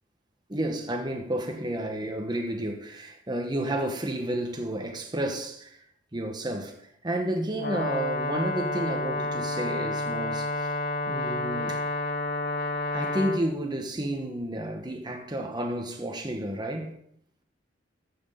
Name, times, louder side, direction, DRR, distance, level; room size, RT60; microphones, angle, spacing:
voice 1, 0.5-5.8 6.1-6.7 7.0-10.7 11.1-11.8 12.9-16.9, right 1 dB, 25° right, 1.1 m, -31 dB
Brass instrument, 7.6-13.4, left 2 dB, 60° left, 0.9 m, -30 dB
13.5 x 6.3 x 3.7 m
head